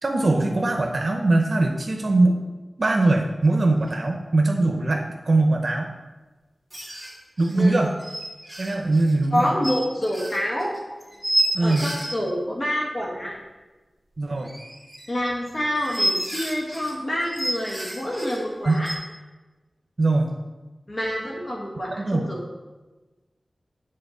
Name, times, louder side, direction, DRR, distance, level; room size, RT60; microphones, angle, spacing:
voice 1, 0.0-2.4 2.8-5.9 7.4-7.9 8.6-9.5 11.5-11.9 14.2-14.5 18.7-18.8 20.0-20.3 22.0-22.3, right 2 dB, 65° right, 2 dB, 0.7 m, -21 dB
sound 1, 3.5-3.6 3.8-4.0 6.7-12.1 14.4-18.9, right 1 dB, ahead, 2.4 m, -30 dB
voice 2, 9.3-10.7 11.6-13.3 15.1-18.9 20.9-22.4, equal, 55° left, -4 dB, 1.6 m, -27 dB
7.7 x 4.3 x 6.6 m, 1.2 s
wide cardioid pair, 80°, 0 cm